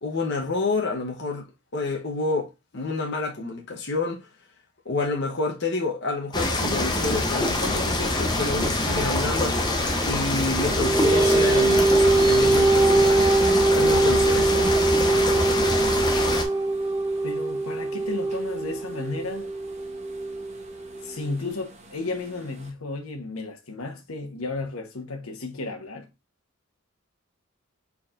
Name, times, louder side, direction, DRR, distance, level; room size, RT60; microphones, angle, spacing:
voice 1, 0.0-4.3 4.8-13.3 13.7-14.7, left 3 dB, 55° left, 0.9 m, -29 dB
sound 1, 6.3-16.4, left 2 dB, 20° left, 0.7 m, -25 dB
sound 2, 6.7-22.7, right 1 dB, 30° right, 0.9 m, -40 dB
sound 3, 10.4-21.3, right 2 dB, 15° right, 0.4 m, -22 dB
voice 2, 17.2-19.5 21.0-26.1, left 3 dB, 85° left, 1.1 m, -33 dB
4.6 x 4.2 x 2.5 m
head